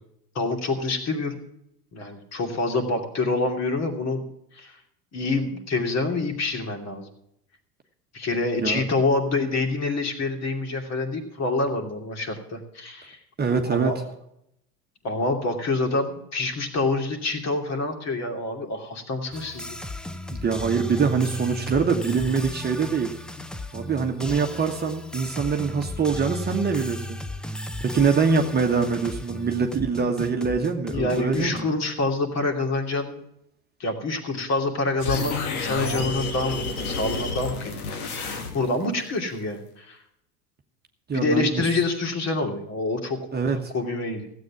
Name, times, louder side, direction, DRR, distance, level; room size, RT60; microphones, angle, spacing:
voice 1, 0.3-1.4 1.9-4.3 4.5-4.8 5.1-7.1 8.1-13.2 13.7-14.1 15.0-19.8 23.4-23.5 30.9-33.2 33.8-40.0 41.1-43.2 43.7-44.3, left 3 dB, 35° left, 4 dB, 2.7 m, -27 dB
voice 2, 13.4-14.0 20.3-23.1 23.7-27.2 27.8-31.6 41.1-41.6 43.3-43.6, right 5 dB, 20° right, 3 dB, 1.4 m, -24 dB
sound 1, 19.3-31.6, left 1 dB, ahead, 0.4 m, -35 dB
sound 2, 35.0-38.8, left 4 dB, 70° left, 2.0 m, -30 dB
15.5 x 8.3 x 6.0 m, 0.78 s
figure-of-eight pair, 75°, 45 cm